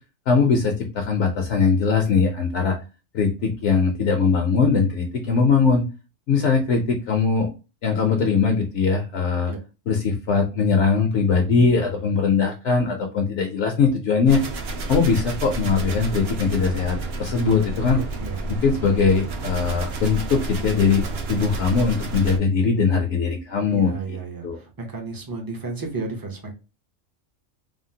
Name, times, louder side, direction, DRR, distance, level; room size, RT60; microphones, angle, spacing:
voice 1, 0.3-2.8 3.1-5.9 6.3-7.5 7.8-9.5 9.9-14.4 14.9-18.0 18.6-24.2 24.4-24.6, left 5 dB, 70° left, 3 dB, 0.9 m, -21 dB
sound 1, 14.3-22.4, right 3 dB, 60° right, 0.8 m, -30 dB
voice 2, 17.9-18.5 23.7-26.5, right 3 dB, 25° right, 2 dB, 0.5 m, -33 dB
3.5 x 2.0 x 2.6 m, 0.30 s
omnidirectional pair, 1.3 m